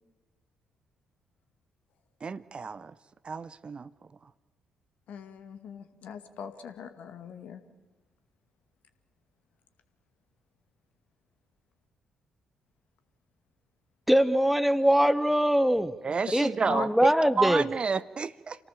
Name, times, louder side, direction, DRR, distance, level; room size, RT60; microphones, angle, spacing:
voice 1, 2.2-2.9 3.2-3.9 16.0-18.6, right 5 dB, 35° right, 0.8 m, -30 dB
voice 2, 5.1-7.6 16.7-16.9, left 7 dB, 55° left, 2.0 m, -40 dB
voice 3, 14.1-15.9 16.3-17.6, equal, 5° right, 1.1 m, -23 dB
29.0 x 18.0 x 7.3 m
figure-of-eight pair, 40°, 3 cm